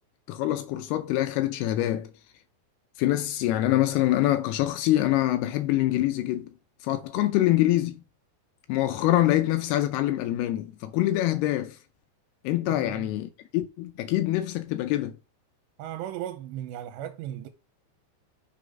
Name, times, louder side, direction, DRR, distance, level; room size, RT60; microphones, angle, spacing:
voice 1, 0.3-2.1 3.0-6.5 6.8-8.0 8.7-11.8 12.4-15.1, left 14 dB, 85° left, 2.3 m, -25 dB
voice 2, 12.7-13.1 15.8-17.5, right 11 dB, 80° right, 2.8 m, -36 dB
6.0 x 5.0 x 5.3 m
omnidirectional pair, 5.2 m